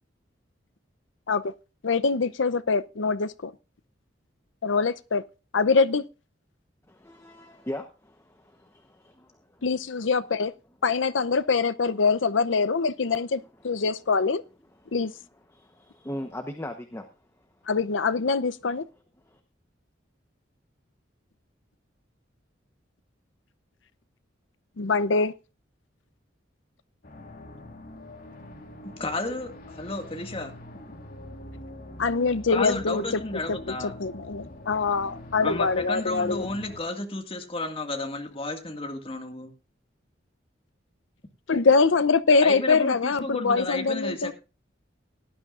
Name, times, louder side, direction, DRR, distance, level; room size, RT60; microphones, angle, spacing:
voice 1, 1.8-3.5 4.6-5.2 5.5-6.0 9.6-10.5 10.8-14.4 14.9-15.1 17.7-18.8 24.8-25.3 32.0-33.2 33.5-36.5 41.5-44.3, left 4 dB, 80° left, 0.7 m, -24 dB
voice 2, 6.9-9.6 13.1-13.3 13.6-13.7 14.8-15.0 15.5-17.1 19.2-19.4, left 1 dB, 15° left, 1.0 m, -39 dB
sound 1, 27.0-36.8, left 1 dB, 50° left, 2.8 m, -44 dB
voice 3, 29.0-30.5 30.8-31.0 32.5-34.0 35.4-39.5 42.4-44.3, left 2 dB, 30° left, 2.0 m, -32 dB
18.0 x 11.5 x 2.5 m
head